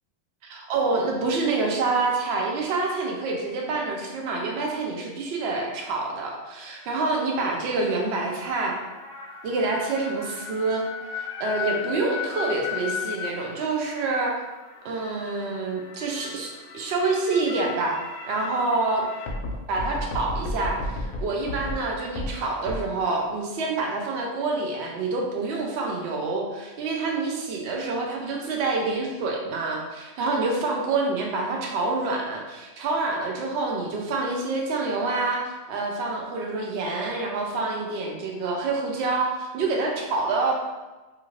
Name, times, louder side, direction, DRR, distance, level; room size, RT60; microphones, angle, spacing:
voice 1, 0.4-8.8 9.4-10.8 11.1-14.3 14.8-18.0 18.2-19.0 19.7-40.6, right 3 dB, 70° right, 0 dB, 0.8 m, -27 dB
sound 1, 7.5-22.8, left 3 dB, 60° left, 0.6 m, -35 dB
2.8 x 2.4 x 3.0 m, 1.2 s
omnidirectional pair, 1.2 m